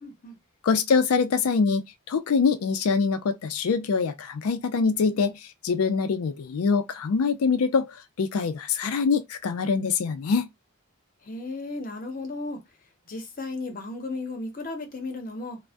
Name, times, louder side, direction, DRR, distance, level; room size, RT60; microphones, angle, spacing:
voice 1, 0.0-0.4 11.2-12.6 13.1-15.6, left 2 dB, 40° left, 0.7 m, -35 dB
voice 2, 0.6-7.9 8.2-10.5, left 5 dB, 75° left, 0.4 m, -24 dB
2.5 x 2.0 x 3.4 m
head